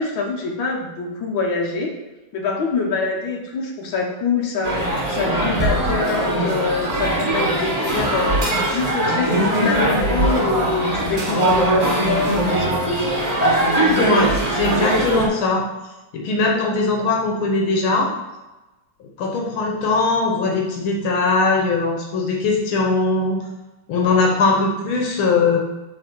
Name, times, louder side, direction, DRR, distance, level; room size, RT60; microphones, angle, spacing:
voice 1, 0.0-1.9 2.3-8.4 8.7-13.0, left 4 dB, 70° left, -1 dB, 1.9 m, -25 dB
sound 1, 4.6-15.3, right 1 dB, 20° right, 1.4 m, -20 dB
voice 2, 13.9-15.7 16.1-18.1 19.0-23.4 23.9-25.6, left 3 dB, 90° left, 0 dB, 2.0 m, -20 dB
8.4 x 3.4 x 6.1 m, 1.1 s
omnidirectional pair, 2.2 m